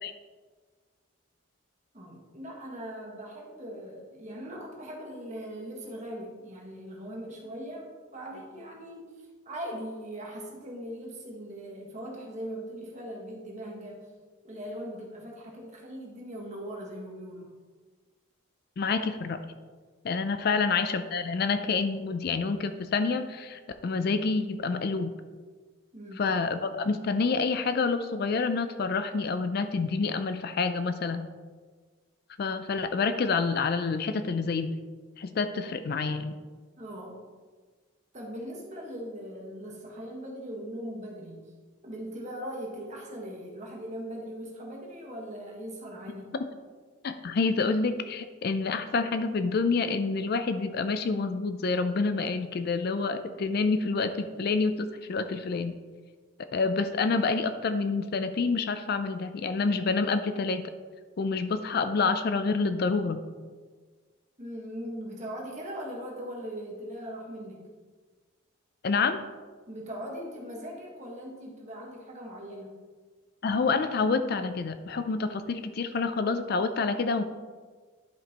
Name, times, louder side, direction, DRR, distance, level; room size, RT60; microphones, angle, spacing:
voice 1, 1.9-9.1 9.4-14.1 14.4-17.5 20.4-20.5 25.9-26.3 36.8-37.2 38.1-41.5 41.8-46.3 64.4-67.7 69.7-72.7, equal, 35° right, -2 dB, 1.4 m, -40 dB
voice 2, 18.8-19.5 20.0-25.1 26.2-31.3 32.4-34.7 35.2-36.3 47.0-55.7 56.5-60.6 61.2-63.2 68.8-69.2 73.4-77.2, left 4 dB, 50° left, 9 dB, 0.4 m, -28 dB
11.0 x 5.1 x 2.9 m, 1.5 s
head